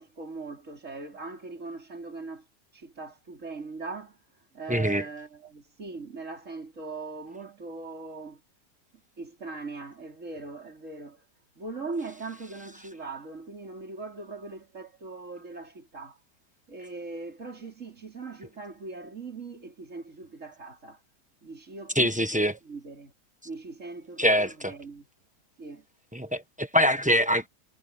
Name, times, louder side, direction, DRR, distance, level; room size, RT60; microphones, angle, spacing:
voice 1, 0.0-2.5 2.7-8.4 9.2-11.3 11.6-16.2 16.7-21.0 21.4-23.1 23.4-25.1 25.6-25.9, right 3 dB, 40° right, 4.3 m, -40 dB
voice 2, 4.7-5.1 21.9-22.6 24.2-24.7 26.1-27.5, equal, 5° right, 1.0 m, -24 dB
omnidirectional pair, 2.0 m